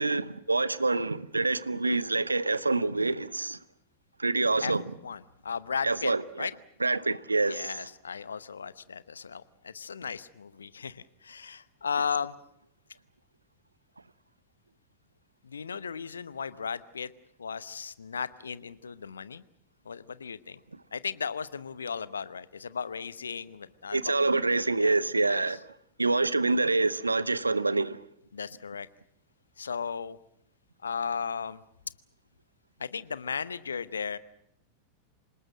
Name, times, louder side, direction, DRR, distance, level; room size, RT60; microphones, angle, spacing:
voice 1, 0.0-3.6 4.2-4.8 5.8-6.2 6.8-7.7 23.9-25.6 26.0-28.0, right 3 dB, 80° right, 0.8 m, -26 dB
voice 2, 5.0-6.1 6.4-6.5 7.5-12.4 15.4-17.1 17.4-19.4 19.8-20.6 20.9-25.6 28.3-28.9 29.6-30.2 30.8-31.6 32.8-34.2, left 6 dB, 70° left, 0.9 m, -36 dB
27.0 x 19.5 x 7.6 m
figure-of-eight pair, 90°, 0 cm